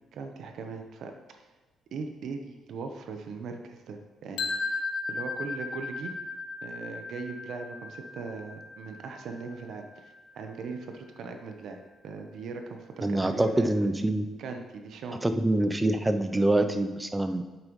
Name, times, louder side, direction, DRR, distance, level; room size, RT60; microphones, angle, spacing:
voice 1, 0.1-1.4 1.9-4.8 5.1-6.2 6.6-13.7 14.4-15.2, right 4 dB, 70° right, 5 dB, 1.0 m, -39 dB
sound 1, 4.4-10.3, left 3 dB, 85° left, 0.8 m, -36 dB
voice 2, 13.0-14.3 15.2-17.4, right 1 dB, 15° right, 9 dB, 0.6 m, -25 dB
8.6 x 7.5 x 3.2 m, 1.3 s
cardioid pair, 90°, 0 cm